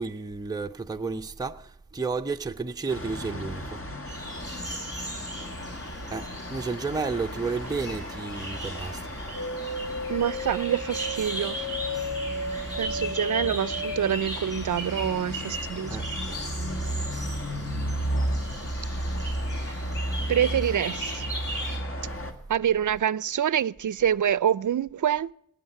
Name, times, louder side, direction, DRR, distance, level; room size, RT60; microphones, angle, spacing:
voice 1, 0.0-3.8 6.1-9.1 15.9-16.1, right 4 dB, 10° right, 0.5 m, -32 dB
sound 1, 2.9-22.3, equal, 40° left, 1.8 m, -34 dB
sound 2, 4.1-21.8, right 1 dB, 10° left, 7.2 m, -38 dB
sound 3, 9.3-18.7 19.0-19.9 20.2-21.1 21.5-21.6, left 1 dB, 60° left, 6.0 m, -36 dB
voice 2, 10.1-11.6 12.8-16.0 20.3-21.3 22.5-25.3, right 9 dB, 60° right, 0.5 m, -26 dB
20.0 x 8.7 x 5.4 m
wide cardioid pair, 70°, 34 cm